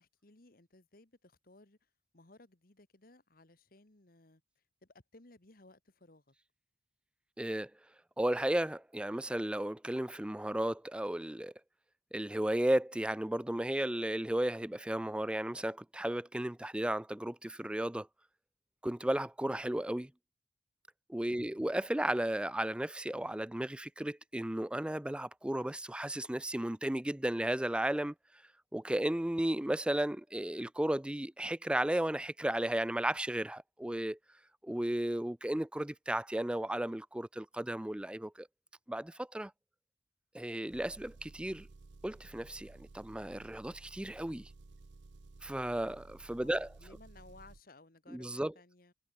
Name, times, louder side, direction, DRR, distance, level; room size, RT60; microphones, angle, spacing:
voice 1, 0.0-1.8 2.1-4.4 4.8-6.3 21.3-21.6 46.4-48.9, left 2 dB, 55° left, 1.8 m, -60 dB
voice 2, 7.4-7.7 8.2-11.5 12.1-18.1 18.8-20.1 21.1-28.1 28.7-34.2 34.6-38.5 38.9-39.5 40.3-41.7 42.0-44.5 45.4-46.7 48.1-48.5, right 1 dB, 5° right, 0.4 m, -34 dB
Engine, 40.7-47.6, right 3 dB, 90° right, 0.7 m, -55 dB
head